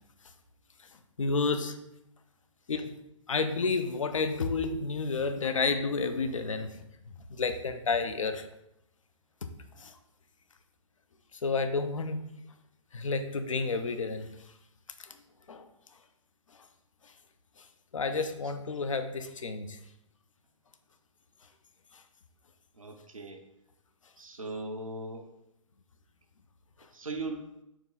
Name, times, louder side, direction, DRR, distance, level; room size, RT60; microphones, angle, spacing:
voice 1, 1.2-1.8 2.7-2.9 3.3-6.8 7.3-8.5 9.4-9.5 9.8-9.9 11.3-12.2 12.9-14.3 15.0-15.2 15.5-15.7 17.0-17.1 17.9-19.8 21.9-22.0, left 4 dB, 70° left, 8 dB, 0.5 m, -30 dB
voice 2, 22.8-23.4 24.2-25.3 26.9-27.5, right 2 dB, 85° right, 4 dB, 0.7 m, -38 dB
4.4 x 3.0 x 3.9 m, 0.85 s
figure-of-eight pair, 125°, 17 cm